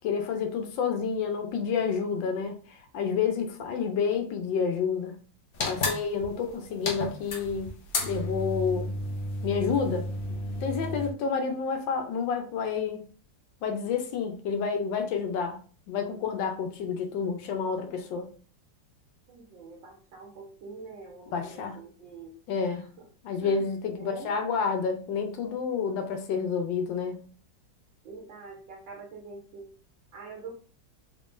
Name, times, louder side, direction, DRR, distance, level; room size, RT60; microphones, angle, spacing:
voice 1, 0.0-5.2 5.6-7.7 8.0-8.9 9.4-10.1 10.6-13.0 13.6-15.6 15.9-18.3 21.3-21.7 22.5-22.9 23.2-27.2, left 6 dB, 90° left, 5 dB, 1.4 m, -29 dB
voice 2, 3.3-3.9 6.2-6.9 19.3-22.4 22.7-23.1 23.4-24.3 25.7-25.9 28.0-29.7 30.1-30.5, right 4 dB, 90° right, 0 dB, 1.6 m, -46 dB
sound 1, 5.5-11.1, left 2 dB, 75° left, 0.5 m, -32 dB
3.8 x 3.6 x 2.5 m, 0.40 s
omnidirectional pair, 1.9 m